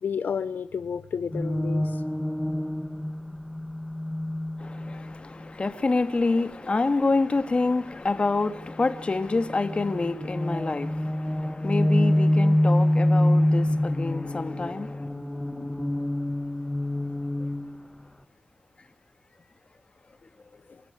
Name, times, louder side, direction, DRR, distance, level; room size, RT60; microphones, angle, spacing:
voice 1, 0.0-2.0, left 6 dB, 75° left, 0.9 m, -31 dB
sound 1, 1.3-5.5 8.5-17.8, left 1 dB, 10° left, 1.3 m, -26 dB
voice 2, 4.6-15.0, left 3 dB, 35° left, 1.9 m, -27 dB
25.5 x 14.5 x 9.8 m
wide cardioid pair, 95°, 3 cm